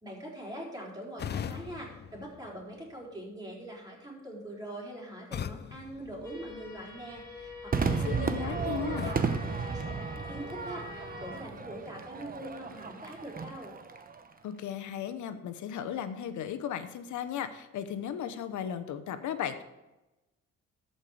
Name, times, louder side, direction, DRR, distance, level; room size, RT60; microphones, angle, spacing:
voice 1, 0.0-13.7, right 1 dB, 15° right, -3 dB, 4.2 m, -43 dB
sound 1, 1.2-3.1 5.3-7.0 9.0-10.6, left 8 dB, 35° left, 0.4 m, -42 dB
sound 2, 6.2-11.4, left 4 dB, 10° left, 3.7 m, -46 dB
Crowd / Fireworks, 7.7-14.3, right 5 dB, 30° right, 0.9 m, -34 dB
voice 2, 7.9-9.1 14.4-19.6, left 9 dB, 75° left, 11 dB, 0.9 m, -36 dB
14.0 x 5.5 x 4.9 m, 1.0 s
cardioid pair, 90°, 30 cm